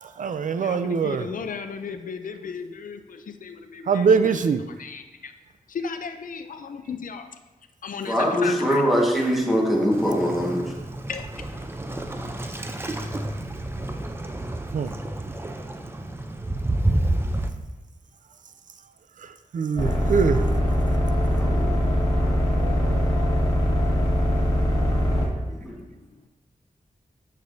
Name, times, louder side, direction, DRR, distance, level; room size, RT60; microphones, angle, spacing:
voice 1, 0.0-1.3 3.9-4.6 14.7-14.9 19.2-20.5 22.6-23.2, right 5 dB, 65° right, 10 dB, 0.4 m, -23 dB
voice 2, 0.6-4.3 4.8-5.3 5.7-7.3 7.8-9.0 11.1-11.3 11.5-11.6 12.7-12.8, left 5 dB, 75° left, 8 dB, 0.5 m, -35 dB
voice 3, 8.1-10.7 21.2-21.8 25.5-25.8, equal, ahead, -3 dB, 1.5 m, -23 dB
Waves surf, 9.9-17.5, right 1 dB, 15° right, 0.5 m, -29 dB
sound 1, 19.8-25.3, equal, 25° left, 1.8 m, -22 dB
9.5 x 6.5 x 2.7 m, 1.1 s
wide cardioid pair, 120°, 14 cm